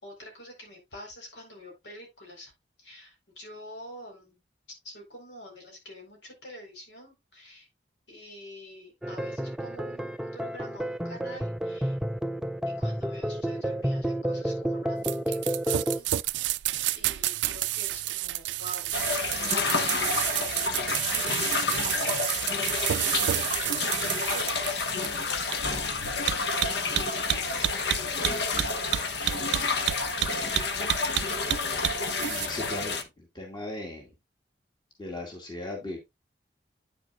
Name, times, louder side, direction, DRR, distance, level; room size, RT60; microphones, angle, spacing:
voice 1, 0.0-2.5 2.8-4.4 4.8-7.7 8.1-12.0 12.8-16.6 16.9-22.2 23.0-25.6 26.1-27.8 28.0-29.8, equal, 85° left, 0 dB, 4.4 m, -47 dB
sound 1, 9.0-16.0, right 1 dB, 5° right, 0.3 m, -30 dB
sound 2, 15.0-32.5, right 14 dB, 80° right, 0.3 m, -29 dB
sound 3, 18.9-33.0, left 4 dB, 70° left, 1.0 m, -29 dB
voice 2, 32.2-34.1 35.0-36.0, left 2 dB, 25° left, 1 dB, 2.2 m, -38 dB
9.4 x 6.7 x 2.4 m, 0.20 s
head